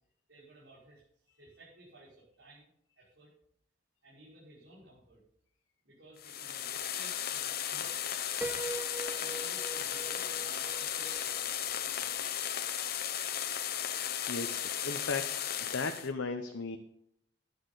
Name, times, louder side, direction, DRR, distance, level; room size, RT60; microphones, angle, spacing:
voice 1, 0.3-2.7 3.0-3.3 4.0-5.2 5.8-8.3 9.0-12.1, right 1 dB, 70° right, -10 dB, 5.7 m, -56 dB
sound 1, 6.2-16.1, left 10 dB, 50° left, 0.9 m, -35 dB
Piano, 8.4-12.2, right 3 dB, 10° right, 0.5 m, -43 dB
voice 2, 14.3-16.8, left 4 dB, 90° left, 6 dB, 0.9 m, -36 dB
14.5 x 10.5 x 4.1 m, 0.71 s
head